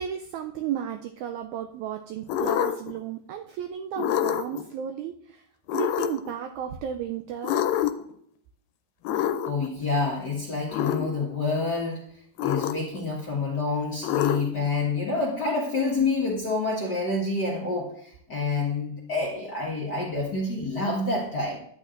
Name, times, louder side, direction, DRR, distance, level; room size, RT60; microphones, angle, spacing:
voice 1, 0.0-5.4 5.7-7.6, right 9 dB, 85° right, 5 dB, 1.7 m, -33 dB
sound 1, 2.3-3.0 4.0-4.6 5.7-6.3 7.4-8.1 9.1-9.7 10.7-11.1 12.4-13.0 14.0-14.7, left 11 dB, 85° left, 2.3 m, -26 dB
voice 2, 9.5-12.0 12.4-21.6, left 3 dB, 45° left, -4 dB, 1.4 m, -28 dB
11.0 x 8.5 x 2.5 m, 0.67 s
omnidirectional pair, 3.9 m